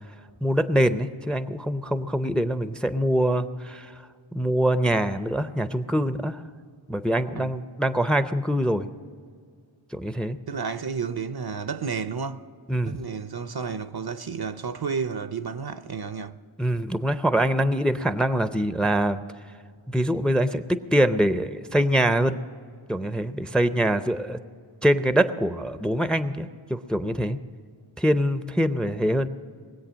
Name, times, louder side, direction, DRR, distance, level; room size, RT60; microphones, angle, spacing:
voice 1, 0.4-3.9 4.3-6.4 6.9-8.9 9.9-10.4 12.7-13.0 16.6-19.2 19.9-22.4 22.9-24.4 24.8-27.4 28.0-29.3, right 1 dB, ahead, 0.6 m, -24 dB
voice 2, 10.5-12.5 12.9-16.4, right 5 dB, 50° right, 0.7 m, -31 dB
20.5 x 8.2 x 6.3 m
wide cardioid pair, 40°, 48 cm